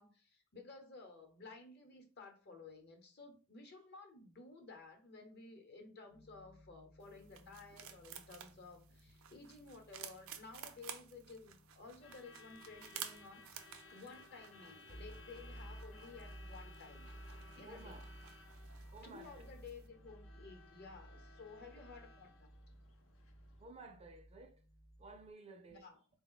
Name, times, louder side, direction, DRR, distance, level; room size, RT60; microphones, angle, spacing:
voice 1, 0.0-17.1 17.5-18.0 19.0-22.5 25.7-26.0, left 4 dB, 55° left, 0.9 m, -55 dB
sound 1, 6.1-25.3, right 1 dB, 20° left, 0.6 m, -58 dB
sound 2, 7.0-19.9, right 9 dB, 90° right, 0.5 m, -54 dB
Truck / Alarm, 11.8-23.7, left 3 dB, 70° left, 0.5 m, -60 dB
voice 2, 17.6-18.0 18.9-19.5 23.6-24.6 25.0-25.9, right 3 dB, 30° right, 0.5 m, -54 dB
3.8 x 2.2 x 3.9 m
head